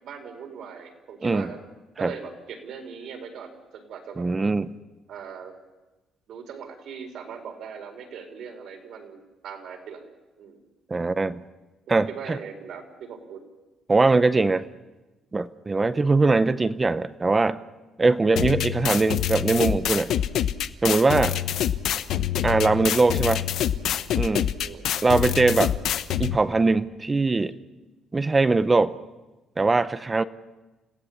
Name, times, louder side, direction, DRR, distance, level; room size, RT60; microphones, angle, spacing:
voice 1, 0.0-1.6 2.0-4.3 5.1-5.6 6.3-10.1 10.4-10.6 12.1-13.4 15.9-16.1 24.6-24.9, right 6 dB, 65° right, 4 dB, 4.4 m, -40 dB
voice 2, 4.2-4.7 10.9-11.4 11.9-12.4 13.9-14.7 15.3-17.6 18.0-20.1 20.8-21.4 22.4-23.4 24.1-24.5 25.0-25.8 26.2-27.5 28.1-29.0 29.6-30.2, right 3 dB, 20° right, 12 dB, 0.7 m, -21 dB
sound 1, 18.4-26.4, left 10 dB, 75° left, 0.9 m, -26 dB
29.0 x 17.0 x 7.2 m, 1.1 s
cardioid pair, 140°, 0 cm